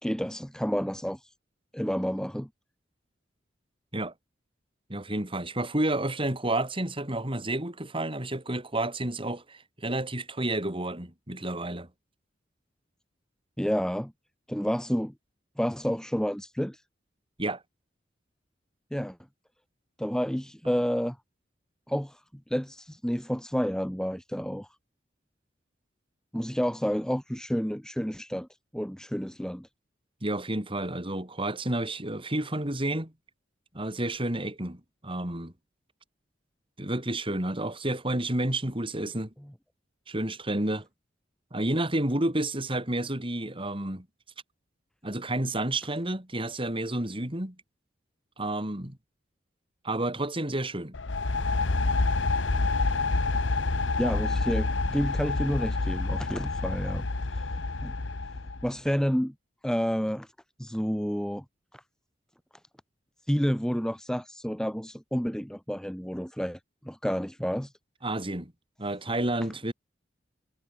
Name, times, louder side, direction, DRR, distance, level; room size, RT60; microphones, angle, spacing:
voice 1, 0.0-1.3 1.7-2.5 13.6-14.1 14.5-15.1 15.6-16.8 18.9-19.2 20.0-21.2 21.9-22.2 22.5-24.7 26.3-28.5 28.7-29.7 54.0-57.9 58.6-59.3 59.6-60.3 60.6-61.4 61.7-61.8 63.3-66.6 66.8-67.7, equal, 5° left, 1.7 m, -30 dB
voice 2, 4.9-11.9 17.4-17.6 30.2-33.1 33.7-35.5 36.8-39.3 40.1-40.9 41.5-44.1 45.0-47.6 48.4-49.0 49.8-51.0 68.0-68.5 68.8-69.7, right 1 dB, 30° right, 4.4 m, -30 dB
sound 1, 50.9-58.7, left 3 dB, 90° left, 1.1 m, -28 dB
head